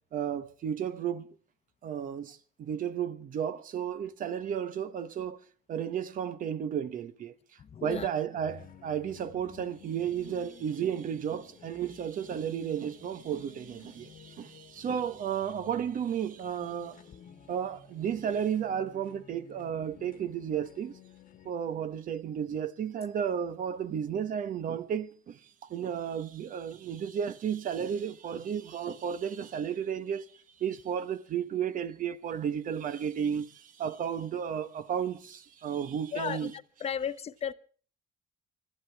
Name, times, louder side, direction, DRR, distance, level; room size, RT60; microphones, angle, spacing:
voice 1, 0.1-1.3 1.8-5.4 5.7-7.3 7.8-17.0 17.5-21.0 21.4-30.3 30.6-36.5, right 8 dB, 55° right, 1.1 m, -33 dB
voice 2, 7.6-8.1 36.1-36.5 36.8-37.5, left 8 dB, 35° left, 0.8 m, -34 dB
sound 1, 8.2-21.5, left 8 dB, 55° left, 1.3 m, -53 dB
25.5 x 12.5 x 3.5 m
cardioid pair, 110°, 17 cm